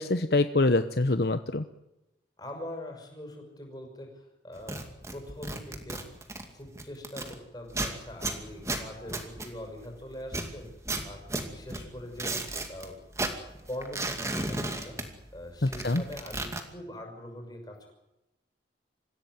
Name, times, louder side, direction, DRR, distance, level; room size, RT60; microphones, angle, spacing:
voice 1, 0.0-1.6 15.6-16.0, left 2 dB, 55° left, 10 dB, 0.9 m, -25 dB
voice 2, 2.4-4.8 5.1-6.1 6.5-13.0 13.7-17.9, left 1 dB, 20° left, 3 dB, 6.1 m, -43 dB
sound 1, 4.6-7.3 7.7-9.9 10.2-12.9 13.1-15.4 15.6-16.6, right 2 dB, 15° right, 2.4 m, -35 dB
26.0 x 16.0 x 9.5 m, 0.95 s
head